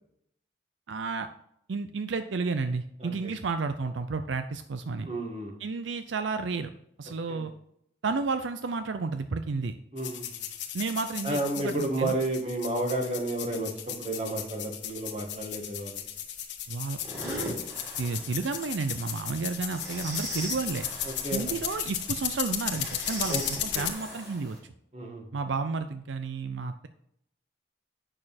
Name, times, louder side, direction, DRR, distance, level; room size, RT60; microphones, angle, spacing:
voice 1, 0.9-1.3 1.7-5.1 5.6-6.7 7.0-7.5 8.0-9.7 10.7-12.2 16.7-17.5 18.0-20.9 21.3-24.6 25.3-26.9, right 4 dB, 80° right, 9 dB, 0.5 m, -32 dB
voice 2, 5.0-5.5 7.3-7.4 9.9-10.2 11.2-16.0 21.0-21.6 23.3-23.4 23.7-23.8 24.9-25.2, right 1 dB, 35° right, 2 dB, 1.7 m, -31 dB
sound 1, 10.0-23.9, left 10 dB, 70° left, 1.3 m, -35 dB
sound 2, 17.0-24.6, equal, 15° right, 2.8 m, -41 dB
8.8 x 6.6 x 4.2 m, 0.72 s
head